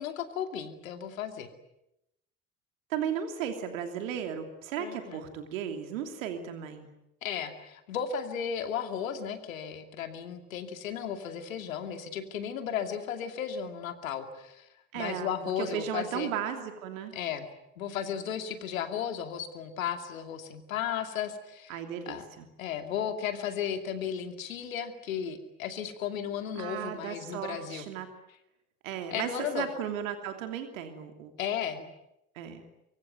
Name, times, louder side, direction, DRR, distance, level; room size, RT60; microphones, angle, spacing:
voice 1, 0.0-1.5 4.8-5.2 7.2-14.7 14.9-16.3 17.1-17.5 17.8-21.8 22.1-22.2 22.6-27.9 29.1-29.7 31.4-31.8, left 8 dB, 80° left, 7 dB, 2.6 m, -35 dB
voice 2, 2.9-6.9 14.9-17.1 21.7-22.5 26.6-28.1 28.8-31.3 32.3-32.6, right 8 dB, 75° right, 6 dB, 2.9 m, -35 dB
25.0 x 23.5 x 9.2 m, 0.85 s
figure-of-eight pair, 60°, 40 cm